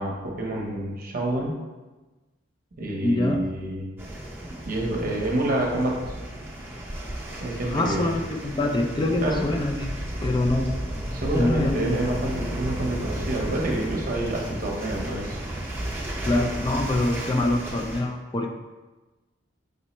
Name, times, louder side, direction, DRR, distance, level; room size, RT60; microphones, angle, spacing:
voice 1, 0.0-1.6 2.8-3.9 4.6-6.2 7.4-8.2 9.2-9.5 11.1-15.4, right 1 dB, 45° right, -1 dB, 0.8 m, -27 dB
voice 2, 3.0-3.5 7.7-9.9 10.2-10.8 11.3-11.8 16.2-18.5, left 2 dB, 20° left, 3 dB, 0.3 m, -25 dB
sound 1, 4.0-18.0, right 1 dB, 10° right, 0.7 m, -33 dB
5.3 x 2.0 x 4.1 m, 1.2 s
head